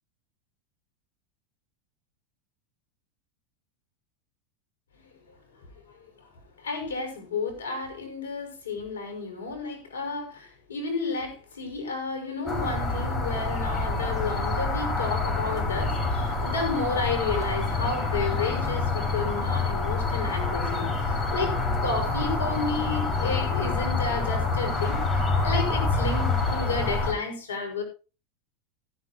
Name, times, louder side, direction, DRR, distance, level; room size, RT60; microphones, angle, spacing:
voice 1, 5.9-6.3 6.6-27.8, left 4 dB, 90° left, 5.9 m, -32 dB
sound 1, 12.5-27.1, left 3 dB, 25° left, 6.5 m, -27 dB
15.0 x 13.0 x 3.0 m
hypercardioid pair, 100°, 0 cm